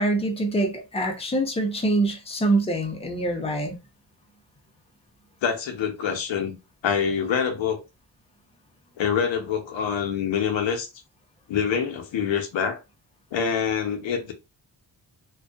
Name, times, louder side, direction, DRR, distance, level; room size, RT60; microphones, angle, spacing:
voice 1, 0.0-3.8, right 2 dB, 15° left, 0.6 m, -25 dB
voice 2, 5.4-7.8 9.0-10.9 11.5-12.8 13.3-14.3, left 7 dB, 80° left, 0.7 m, -26 dB
2.5 x 2.3 x 2.3 m
wide cardioid pair, 100°, 45 cm